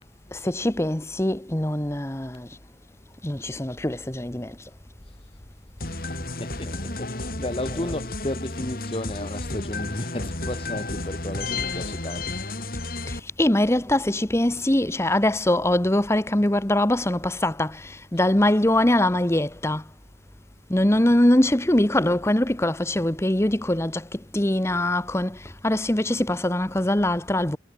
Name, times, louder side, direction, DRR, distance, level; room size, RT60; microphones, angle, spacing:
voice 1, 0.3-2.5 3.2-4.6 13.1-19.8 20.7-27.6, left 1 dB, 15° left, 1.0 m, -23 dB
sound 1, 5.8-13.2, left 2 dB, 55° left, 4.2 m, -32 dB
voice 2, 5.8-12.7 18.1-18.2, left 1 dB, 30° left, 1.4 m, -34 dB
head